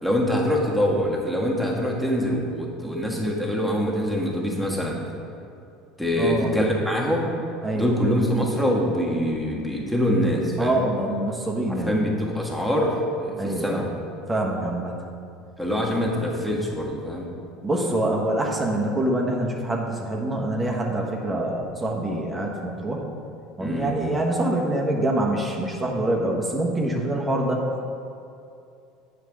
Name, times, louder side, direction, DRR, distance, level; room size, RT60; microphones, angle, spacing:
voice 1, 0.0-5.0 6.0-7.3 7.7-10.8 11.7-13.9 15.6-17.3 23.6-23.9, equal, ahead, -3 dB, 1.7 m, -24 dB
voice 2, 6.2-6.5 7.6-7.9 10.6-12.0 13.4-13.9 14.3-15.0 17.6-23.0 23.6-27.6, right 1 dB, 20° right, -1 dB, 1.3 m, -25 dB
8.4 x 4.8 x 4.8 m, 2.6 s
hypercardioid pair, 70°, 0 cm